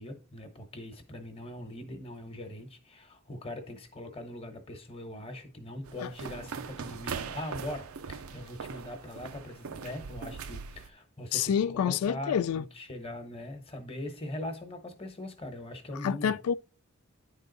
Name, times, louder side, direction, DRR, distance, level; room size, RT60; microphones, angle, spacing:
voice 1, 0.0-16.4, left 1 dB, 25° left, 1.1 m, -41 dB
sound 1, 5.9-10.9, right 6 dB, 70° right, 0.5 m, -41 dB
voice 2, 11.3-12.7 16.0-16.5, left 8 dB, 80° left, 0.3 m, -28 dB
9.9 x 3.8 x 3.9 m
head